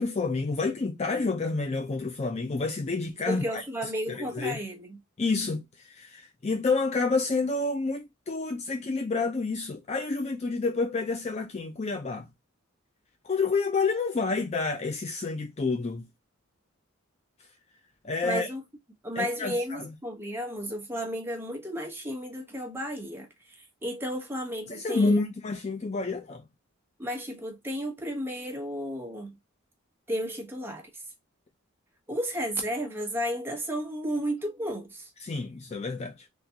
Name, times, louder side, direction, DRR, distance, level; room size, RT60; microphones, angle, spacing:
voice 1, 0.0-3.6 4.1-4.6 5.2-12.3 13.2-16.1 18.0-18.5 19.2-19.9 24.7-26.4 35.2-36.3, left 3 dB, 30° left, 0.4 m, -29 dB
voice 2, 3.3-5.0 18.2-18.6 19.0-25.2 27.0-29.4 30.1-31.0 32.1-35.1, equal, 10° right, 1.0 m, -33 dB
3.6 x 2.4 x 2.7 m
head